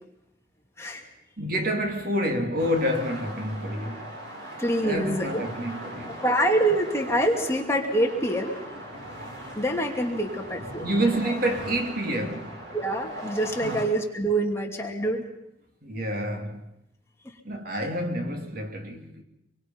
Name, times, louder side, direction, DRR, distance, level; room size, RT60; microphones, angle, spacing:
voice 1, 0.8-1.1 4.6-5.4 6.2-8.7 9.4-11.1 12.7-15.2, right 1 dB, 15° left, 2.8 m, -26 dB
voice 2, 1.4-4.1 4.8-6.2 10.8-12.6 13.6-13.8 15.8-16.6 17.4-19.2, equal, 55° right, 2.9 m, -28 dB
sound 1, 2.6-13.8, right 1 dB, 70° right, 6.9 m, -40 dB
27.0 x 23.0 x 5.7 m
head